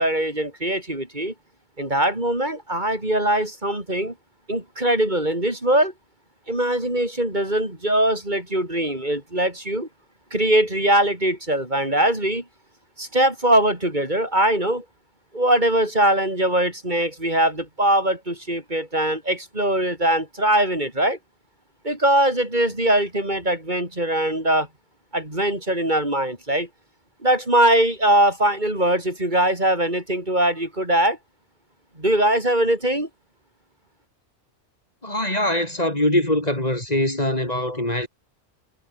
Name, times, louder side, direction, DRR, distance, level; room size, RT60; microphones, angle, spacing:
voice 1, 0.0-1.3 1.8-4.1 4.5-5.9 6.5-9.9 10.3-12.4 13.0-14.8 15.3-21.2 21.8-24.7 25.1-26.7 27.2-31.2 32.0-33.1, right 1 dB, 40° right, 6.0 m, -21 dB
voice 2, 35.0-38.1, left 1 dB, 35° left, 4.5 m, -23 dB
omnidirectional pair, 1.2 m